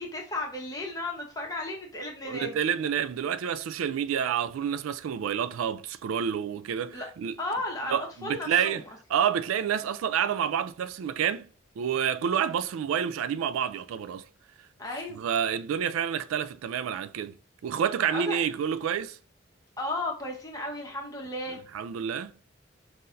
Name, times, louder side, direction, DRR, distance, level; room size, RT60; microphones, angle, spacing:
voice 1, 0.0-2.6 6.9-7.1 7.4-8.0 8.2-8.8 14.8-15.2 18.1-18.4 19.8-21.6, left 2 dB, 20° left, 1.0 m, -34 dB
voice 2, 2.2-7.4 7.9-8.8 9.1-11.5 11.8-14.2 15.2-17.4 17.6-19.2 21.7-22.3, right 8 dB, 90° right, 0.3 m, -28 dB
5.6 x 2.7 x 2.6 m
head